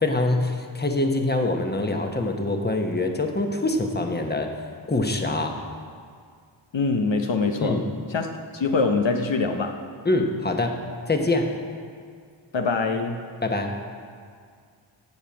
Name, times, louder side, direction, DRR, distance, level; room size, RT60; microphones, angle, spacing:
voice 1, 0.0-4.5 4.9-5.6 7.6-7.8 10.0-10.8 11.1-11.5 13.4-13.7, left 2 dB, 20° left, 3 dB, 1.1 m, -24 dB
voice 2, 6.7-9.8 12.5-13.3, left 4 dB, 65° left, 4 dB, 0.8 m, -24 dB
13.5 x 5.1 x 8.7 m, 2.1 s
wide cardioid pair, 70°, 49 cm